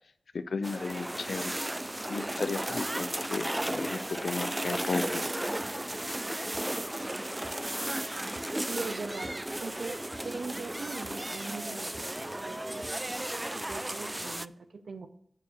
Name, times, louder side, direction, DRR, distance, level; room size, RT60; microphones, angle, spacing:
voice 1, 0.3-1.5 2.1-5.3, left 4 dB, 75° left, 13 dB, 0.6 m, -34 dB
sound 1, 0.6-14.5, right 1 dB, 15° right, 0.3 m, -34 dB
voice 2, 8.7-9.3 9.6-12.0 12.4-12.9 13.5-15.1, right 4 dB, 80° right, 10 dB, 0.7 m, -40 dB
7.0 x 6.8 x 6.5 m, 0.67 s
wide cardioid pair, 60°, 0 cm